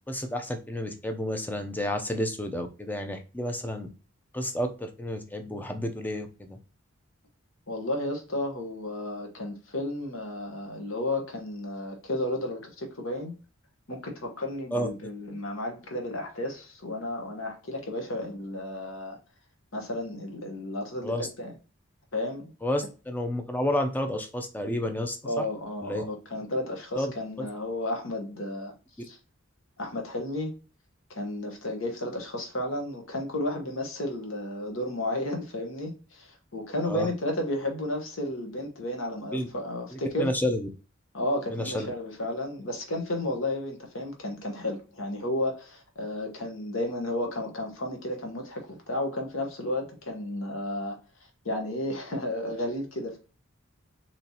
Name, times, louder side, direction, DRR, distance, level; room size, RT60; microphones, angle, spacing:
voice 1, 0.0-3.9 4.3-6.6 14.7-14.9 21.0-21.3 22.6-25.4 25.8-26.0 27.0-27.1 27.4-27.5 36.8-37.1 39.3-39.5 39.9-40.7 41.5-41.9, left 1 dB, 10° left, 0.5 m, -30 dB
voice 2, 7.7-13.3 13.9-19.2 19.7-21.5 22.1-22.5 25.2-29.2 29.8-30.5 31.1-40.3 41.1-51.0 51.4-53.2, left 1 dB, 70° left, 1.1 m, -33 dB
4.2 x 3.0 x 2.8 m
head